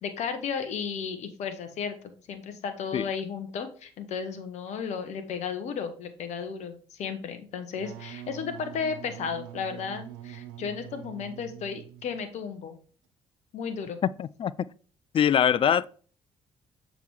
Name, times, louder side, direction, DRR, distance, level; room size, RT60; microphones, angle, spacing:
voice 1, 0.0-2.0 2.3-12.8 13.5-14.0, left 6 dB, 65° left, 1.2 m, -34 dB
Wind instrument woodwind instrument, 7.7-12.3, right 13 dB, 80° right, 0.6 m, -44 dB
voice 2, 14.2-14.5 15.1-15.8, left 9 dB, 45° left, 0.4 m, -23 dB
7.0 x 3.9 x 4.7 m
hypercardioid pair, 50°, 13 cm